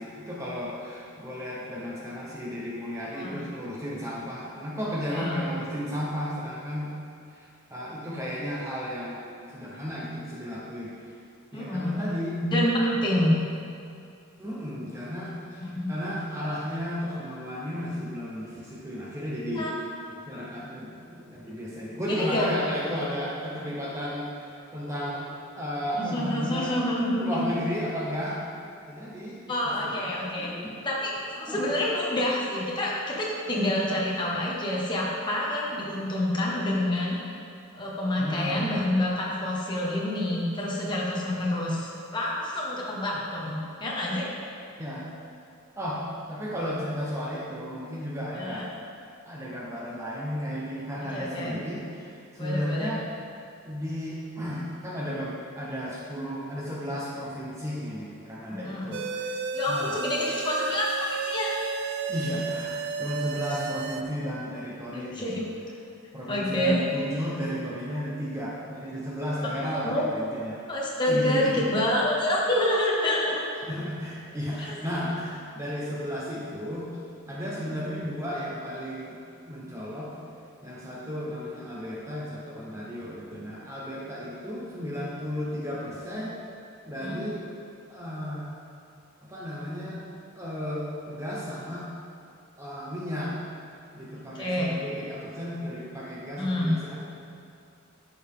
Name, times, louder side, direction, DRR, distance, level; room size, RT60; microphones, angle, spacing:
voice 1, 0.0-6.9 7.3-9.2 9.5-10.9 11.5-12.4 13.1-13.4 14.4-19.7 20.1-25.3 25.6-26.7 27.2-28.4 28.9-29.4 29.8-30.8 31.4-31.6 38.2-38.8 43.1-43.5 44.8-45.1 45.8-48.7 49.3-53.1 53.6-59.3 59.7-59.9 62.1-65.4 66.1-70.6 71.1-71.7 73.6-76.9 77.3-79.2 79.5-80.1 80.6-86.3 86.9-87.4 87.9-88.6 89.2-90.0 90.3-91.9 92.6-93.4 93.9-97.0, equal, 15° right, -5 dB, 1.0 m, -34 dB
voice 2, 5.1-5.5 11.5-12.0 12.4-13.4 15.6-15.9 19.6-19.7 22.1-22.5 25.9-27.4 29.5-30.5 30.8-37.2 37.7-44.3 48.3-48.6 51.1-51.5 52.4-53.0 58.5-58.9 59.5-61.5 65.1-65.4 66.3-66.8 69.8-70.0 70.7-73.4 74.6-74.7 77.6-77.8 87.0-87.2 94.3-94.7 96.4-96.8, left 1 dB, 20° left, -4 dB, 1.3 m, -27 dB
sound 1, 58.9-64.0, right 4 dB, 50° right, 0.4 m, -32 dB
11.0 x 7.1 x 3.6 m, 2.5 s
head